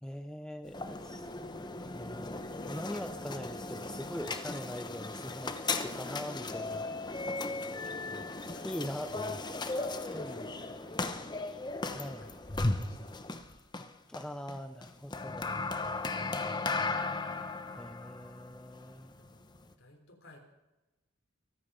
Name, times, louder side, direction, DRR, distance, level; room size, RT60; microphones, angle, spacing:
voice 1, 0.0-1.3 1.8-7.4 7.8-8.2 8.6-9.4 10.1-10.5 11.9-12.2 14.1-15.6 17.8-19.1, equal, 5° left, 8 dB, 0.4 m, -42 dB
sound 1, 0.7-19.7, left 3 dB, 20° left, 0.9 m, -37 dB
voice 2, 7.4-10.9 11.8-13.1 19.2-19.4 19.8-20.4, left 2 dB, 80° left, 1 dB, 3.5 m, -57 dB
23.5 x 8.9 x 5.4 m, 1.0 s
head